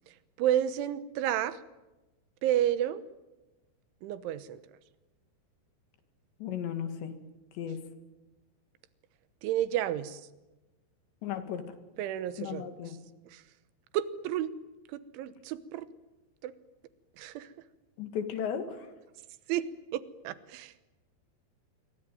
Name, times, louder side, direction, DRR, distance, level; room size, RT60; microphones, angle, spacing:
voice 1, 0.1-1.6 2.4-3.0 4.0-4.6 9.4-10.2 12.0-13.0 13.3-13.4 13.9-14.5 14.9-15.9 16.4-16.5 17.2-17.5 19.5-20.9, right 11 dB, 85° right, 14 dB, 3.5 m, -31 dB
voice 2, 6.4-7.1 7.5-7.8 11.2-11.6 12.4-13.0 18.0-18.9, left 8 dB, 70° left, 8 dB, 4.3 m, -35 dB
26.5 x 22.5 x 9.3 m, 1.1 s
omnidirectional pair, 5.4 m